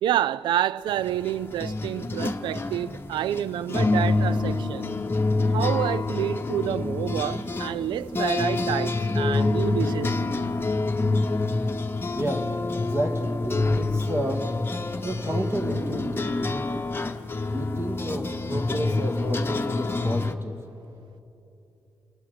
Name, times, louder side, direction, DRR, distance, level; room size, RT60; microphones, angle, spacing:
voice 1, 0.0-5.0 5.5-10.2, right 11 dB, 75° right, 0.4 m, -28 dB
sound 1, 0.9-20.4, left 3 dB, 30° left, 1.1 m, -27 dB
voice 2, 12.1-12.5 12.8-14.4 15.0-16.8 17.5-20.6, right 1 dB, 30° right, 2.5 m, -31 dB
28.5 x 18.5 x 5.0 m
hypercardioid pair, 45°, 8 cm